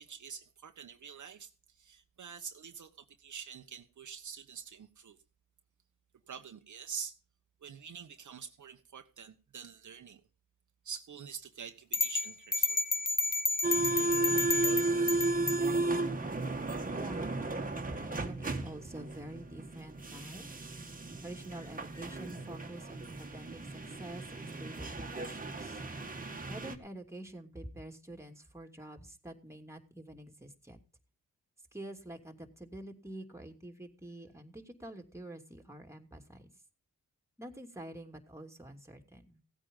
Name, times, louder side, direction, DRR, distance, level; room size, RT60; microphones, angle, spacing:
voice 1, 0.0-5.2 6.3-7.2 7.6-10.2 10.8-12.8, right 7 dB, 60° right, 1.3 m, -46 dB
sound 1, 11.9-15.6, left 3 dB, 25° left, 0.8 m, -31 dB
sound 2, 13.6-26.7, right 2 dB, 25° right, 1.9 m, -34 dB
voice 2, 16.9-20.5 21.2-25.8 26.5-30.8 31.7-36.5 37.4-39.4, right 1 dB, 10° right, 2.8 m, -47 dB
16.0 x 9.0 x 5.4 m
cardioid pair, 65°, 34 cm